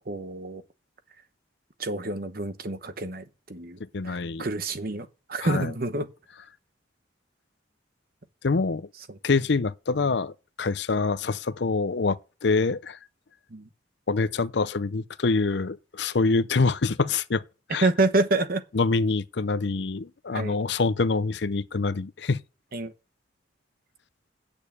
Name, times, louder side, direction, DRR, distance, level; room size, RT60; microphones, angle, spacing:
voice 1, 0.1-0.6 1.8-3.2 3.5-3.8 4.0-6.1 9.1-9.2 13.5-13.7 17.8-18.6 20.3-20.6 22.7-22.9, right 2 dB, 50° right, 1.0 m, -27 dB
voice 2, 3.9-4.5 5.4-5.7 8.4-8.9 9.2-10.3 10.6-13.0 14.1-17.4 17.7-17.9 18.7-22.4, left 4 dB, 65° left, 0.6 m, -25 dB
8.7 x 6.6 x 8.6 m
head